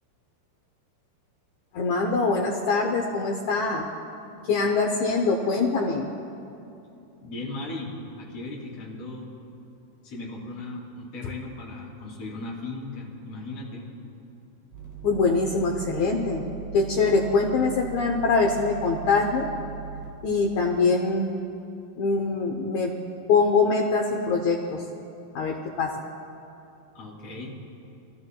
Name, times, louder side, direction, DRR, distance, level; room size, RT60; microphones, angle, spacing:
voice 1, 1.7-3.9 4.5-6.1 15.0-16.4 16.7-19.5 20.2-21.3 22.0-22.9 23.3-24.8 25.3-25.9, left 4 dB, 80° left, 0 dB, 1.6 m, -23 dB
voice 2, 7.2-9.3 10.0-13.9 26.9-27.6, left 2 dB, 45° left, -5 dB, 3.9 m, -37 dB
sound 1, 14.7-20.3, right 7 dB, 65° right, 3.5 m, -38 dB
28.5 x 13.5 x 2.3 m, 2.7 s
omnidirectional pair, 4.4 m